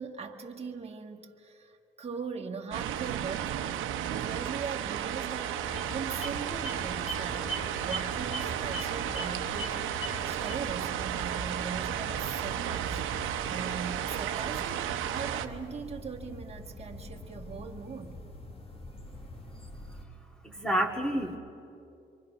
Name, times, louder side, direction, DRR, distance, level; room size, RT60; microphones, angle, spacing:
voice 1, 0.0-18.2, right 5 dB, 30° right, 1 dB, 1.7 m, -40 dB
sound 1, 2.7-15.5, right 10 dB, 85° right, 0.9 m, -33 dB
sound 2, 5.6-20.1, left 1 dB, 30° left, 1.9 m, -43 dB
voice 2, 20.4-21.4, equal, 5° left, 1 dB, 2.2 m, -29 dB
27.0 x 23.5 x 5.9 m, 2.8 s
cardioid pair, 90°, 20 cm